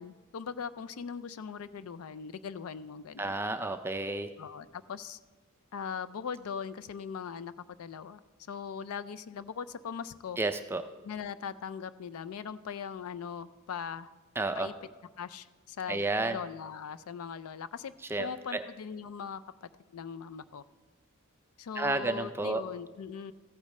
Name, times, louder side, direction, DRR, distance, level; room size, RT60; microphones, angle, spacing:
voice 1, 0.0-3.3 4.4-5.2 5.7-8.2 8.5-10.4 11.0-14.1 14.6-14.7 15.2-20.6 21.6-23.3, left 6 dB, 80° left, 14 dB, 0.4 m, -40 dB
voice 2, 3.2-4.3 10.4-10.8 14.4-14.7 15.9-16.4 18.1-18.6 21.8-22.6, right 2 dB, 10° right, 8 dB, 0.4 m, -31 dB
15.0 x 8.6 x 3.2 m, 1.2 s
head